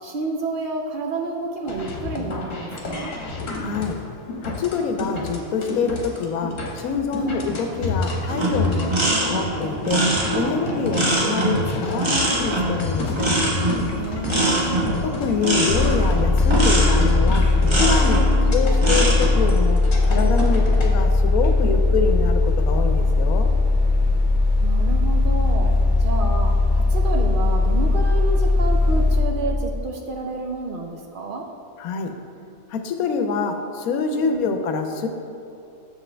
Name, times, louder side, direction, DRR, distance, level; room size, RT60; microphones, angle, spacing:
voice 1, 0.0-3.1 7.1-7.4 8.7-9.4 10.7-11.0 14.0-14.8 18.1-18.6 20.4-20.7 24.6-25.7 26.0-31.5 34.2-34.5, right 3 dB, 65° right, 1 dB, 0.5 m, -30 dB
sound 1, 1.6-20.9, left 3 dB, 65° left, 1.4 m, -29 dB
voice 2, 3.6-4.0 4.4-8.9 9.2-13.3 15.0-17.5 17.8-18.2 18.5-23.5 31.8-32.1 32.7-35.1, left 5 dB, 85° left, 6 dB, 1.1 m, -26 dB
sound 2, 8.3-18.3 18.7-19.3, right 2 dB, 20° right, 1.0 m, -23 dB
sound 3, 15.7-29.2, left 2 dB, 40° left, 0.9 m, -19 dB
7.3 x 7.0 x 3.3 m, 2.8 s
omnidirectional pair, 1.5 m